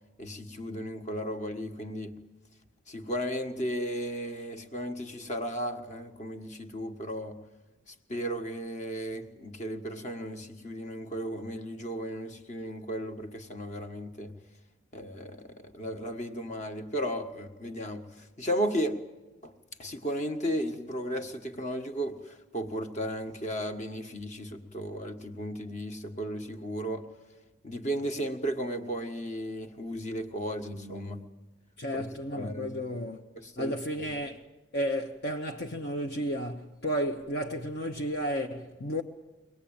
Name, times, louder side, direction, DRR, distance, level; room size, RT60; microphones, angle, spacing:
voice 1, 0.2-2.1 2.9-7.4 7.9-14.3 14.9-19.0 19.4-19.5 19.8-27.0 27.6-31.3 31.9-32.0 32.3-32.7 33.3-34.1, equal, 35° left, 1.5 m, -35 dB
voice 2, 31.8-33.2 33.6-34.5 34.7-39.0, equal, 50° left, 1.0 m, -32 dB
23.5 x 19.0 x 8.9 m
head